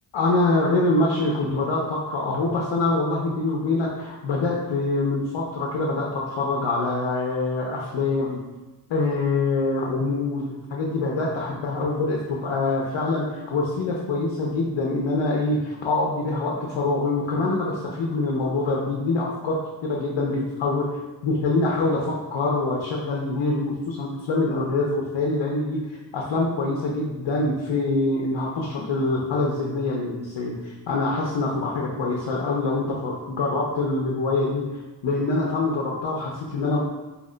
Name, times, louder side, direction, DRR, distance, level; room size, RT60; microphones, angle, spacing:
voice 1, 0.1-8.4 8.9-25.9 26.1-34.6 35.0-36.8, left 2 dB, 90° left, -3 dB, 0.6 m, -25 dB
2.8 x 2.1 x 3.7 m, 1.1 s
wide cardioid pair, 110°, 44 cm